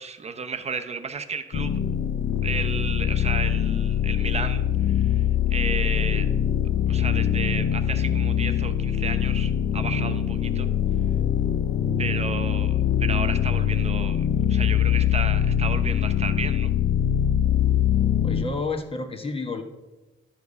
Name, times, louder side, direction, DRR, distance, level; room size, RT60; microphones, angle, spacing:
voice 1, 0.0-1.7 2.4-5.2 5.5-6.3 6.9-10.7 12.0-16.7, right 5 dB, 35° right, 8 dB, 0.8 m, -33 dB
sound 1, 1.5-18.4, left 9 dB, 55° left, 0.7 m, -23 dB
voice 2, 18.2-19.6, left 4 dB, 30° left, 5 dB, 1.3 m, -30 dB
12.0 x 4.7 x 5.5 m, 1.2 s
cardioid pair, 90°, 20 cm